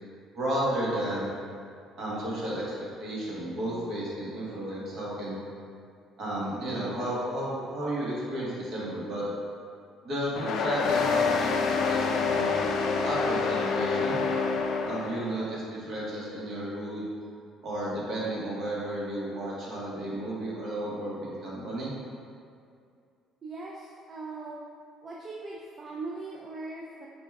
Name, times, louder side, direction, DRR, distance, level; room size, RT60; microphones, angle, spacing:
voice 1, 0.3-1.3 2.0-2.6 3.0-5.4 6.2-9.2 10.0-12.5 13.0-14.2 14.9-17.1 17.6-21.9, right 1 dB, 55° right, -6 dB, 1.3 m, -33 dB
sound 1, 10.4-15.5, left 5 dB, 65° left, 0.3 m, -27 dB
voice 2, 23.4-24.6 25.0-27.1, right 3 dB, 35° right, -3 dB, 0.4 m, -40 dB
4.9 x 2.3 x 3.4 m, 2.3 s
cardioid pair, 95°, 0 cm